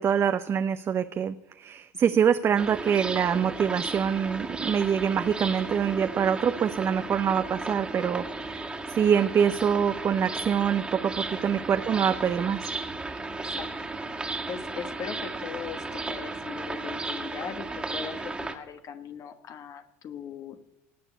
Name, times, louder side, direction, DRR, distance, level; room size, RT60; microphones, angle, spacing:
voice 1, 0.0-12.7, right 8 dB, 35° right, 9 dB, 0.7 m, -25 dB
sound 1, 2.6-18.5, right 3 dB, 10° right, 1.9 m, -35 dB
voice 2, 13.4-13.9 14.5-20.6, left 7 dB, 45° left, 8 dB, 1.3 m, -40 dB
18.5 x 6.9 x 8.3 m, 0.85 s
hypercardioid pair, 80°, 8 cm